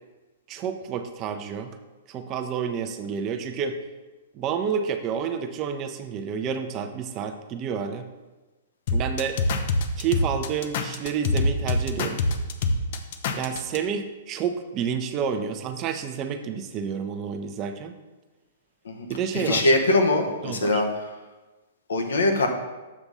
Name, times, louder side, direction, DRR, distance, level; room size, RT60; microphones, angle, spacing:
voice 1, 0.5-1.7 2.1-3.8 4.3-8.1 8.9-9.4 10.0-12.2 13.3-18.0 19.1-19.7 20.4-20.8, right 7 dB, 30° right, 7 dB, 0.6 m, -29 dB
sound 1, 8.9-13.8, left 2 dB, 50° left, 0.6 m, -25 dB
voice 2, 19.3-21.1 21.9-22.5, left 2 dB, 70° left, 3 dB, 0.9 m, -22 dB
7.3 x 3.4 x 5.4 m, 1.2 s
figure-of-eight pair, 115°, 0 cm